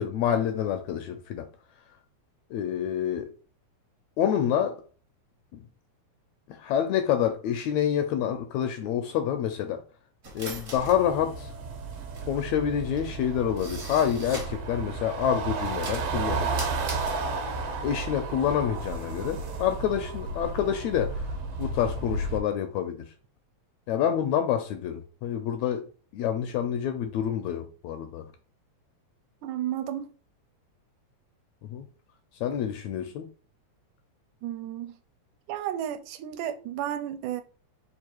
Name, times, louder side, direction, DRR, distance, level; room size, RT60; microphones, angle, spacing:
voice 1, 0.0-1.5 2.5-3.3 4.2-4.8 5.5-5.6 6.5-9.8 10.3-11.5 12.2-16.5 17.8-21.3 21.6-23.1 23.9-25.9 26.1-28.3 31.6-31.8 32.4-33.3, left 9 dB, 80° left, 1.7 m, -27 dB
sound 1, 10.2-14.7 15.1-17.7, right 2 dB, 50° right, 0.8 m, -40 dB
sound 2, 10.8-22.4, right 3 dB, 70° right, 1.8 m, -33 dB
voice 2, 29.4-30.1 34.4-35.0 35.5-37.4, right 11 dB, 85° right, 2.0 m, -32 dB
4.7 x 2.5 x 4.3 m
omnidirectional pair, 3.5 m